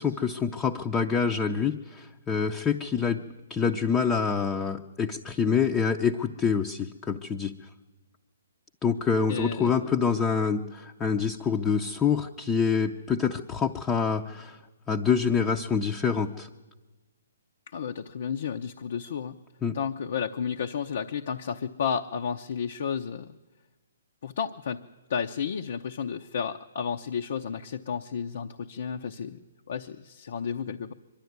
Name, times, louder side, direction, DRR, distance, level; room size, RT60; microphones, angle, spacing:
voice 1, 0.0-3.2 3.5-7.5 8.8-14.6 14.9-16.5 19.6-19.8, left 6 dB, 15° left, 3 dB, 0.6 m, -26 dB
voice 2, 9.3-9.9 17.7-19.4 19.7-23.3 24.2-24.8 25.1-30.9, left 7 dB, 60° left, 4 dB, 0.7 m, -32 dB
23.5 x 11.5 x 9.5 m, 1.2 s
hypercardioid pair, 145°, 0 cm